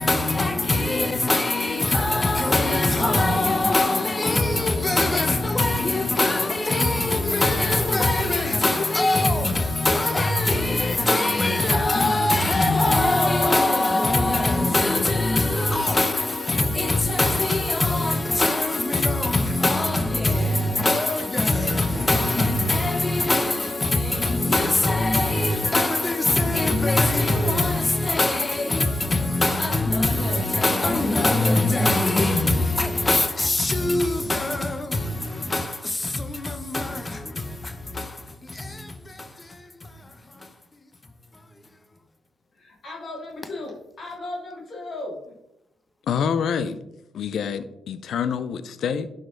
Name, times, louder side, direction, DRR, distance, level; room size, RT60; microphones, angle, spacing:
voice 1, 0.0-40.5, left 2 dB, 20° left, 0.9 m, -22 dB
voice 2, 42.5-45.3, left 2 dB, 50° left, 3.0 m, -36 dB
voice 3, 46.1-46.8 47.1-49.1, left 7 dB, 65° left, 0.6 m, -26 dB
11.5 x 5.2 x 3.9 m
cardioid pair, 90°, 0 cm